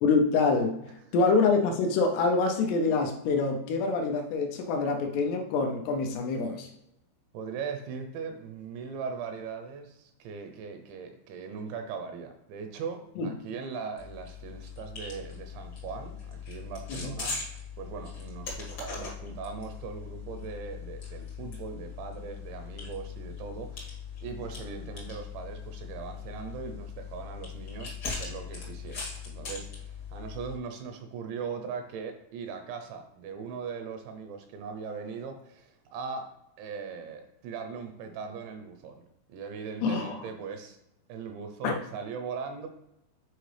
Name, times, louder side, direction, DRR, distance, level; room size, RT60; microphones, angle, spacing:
voice 1, 0.0-0.8 1.1-6.7 13.2-13.3 17.0-17.1 39.8-40.1 41.6-41.7, left 4 dB, 85° left, 3 dB, 2.3 m, -25 dB
voice 2, 7.3-36.3 36.6-39.0 39.3-40.8 41.1-42.7, right 5 dB, 80° right, 6 dB, 2.8 m, -39 dB
sound 1, 14.0-30.6, left 5 dB, 70° left, 1.1 m, -40 dB
8.9 x 4.7 x 3.3 m, 0.84 s
omnidirectional pair, 5.5 m